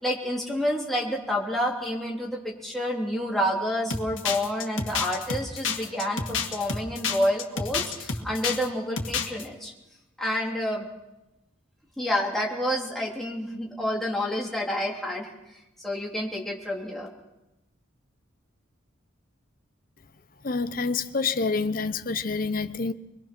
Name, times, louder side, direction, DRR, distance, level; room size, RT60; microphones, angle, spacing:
voice 1, 0.0-9.7 10.2-10.9 12.0-15.3 15.8-17.1, equal, ahead, 3.2 m, -29 dB
sound 1, 3.9-8.7 9.0-9.4, left 5 dB, 75° left, 2.0 m, -29 dB
voice 2, 20.4-22.9, left 4 dB, 45° left, 0.8 m, -27 dB
23.5 x 22.0 x 6.1 m
head